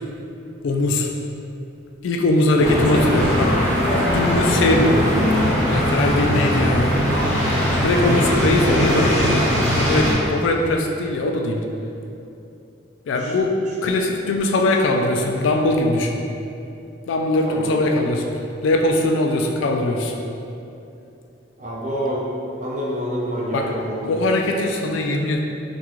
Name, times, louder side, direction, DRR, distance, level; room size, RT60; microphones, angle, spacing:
voice 1, 0.6-1.1 2.0-3.7 4.0-5.0 5.7-7.0 7.8-9.4 9.8-11.6 13.1-13.5 13.8-16.2 17.1-18.2 18.6-20.1 23.5-23.7 24.1-25.4, left 2 dB, 80° left, 2 dB, 0.3 m, -20 dB
sound 1, 2.6-10.1, equal, 20° right, 1.0 m, -20 dB
voice 2, 2.6-3.1 4.8-5.0 8.6-9.3 13.2-13.3 13.8-13.9 17.4-17.8 21.6-22.3 22.6-24.3, equal, 40° right, -4 dB, 0.5 m, -27 dB
3.6 x 2.3 x 2.9 m, 2.7 s
head